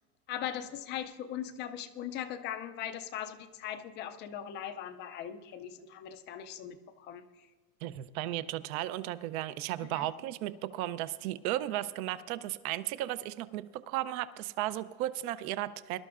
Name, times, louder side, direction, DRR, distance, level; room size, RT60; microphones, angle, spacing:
voice 1, 0.3-7.2 9.8-10.1, left 10 dB, 25° left, 9 dB, 0.4 m, -40 dB
voice 2, 7.8-16.0, right 14 dB, 60° right, 14 dB, 0.7 m, -35 dB
24.0 x 12.0 x 2.5 m, 1.3 s
supercardioid pair, 145°, 48 cm